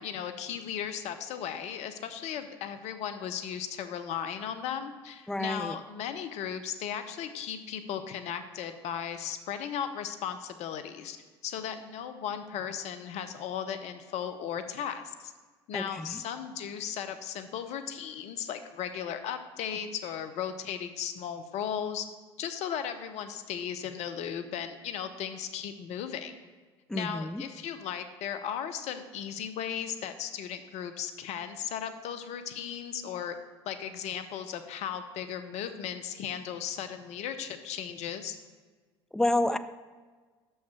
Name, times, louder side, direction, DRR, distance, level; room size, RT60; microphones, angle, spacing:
voice 1, 0.0-11.2 11.4-15.3 15.7-22.1 22.4-26.3 26.9-33.3 33.7-38.4, left 8 dB, 55° left, 9 dB, 0.7 m, -36 dB
voice 2, 5.3-5.7 15.7-16.2 26.9-27.4 39.1-39.6, left 1 dB, 5° left, 11 dB, 0.4 m, -29 dB
6.6 x 5.5 x 6.1 m, 1.4 s
hypercardioid pair, 65°, 14 cm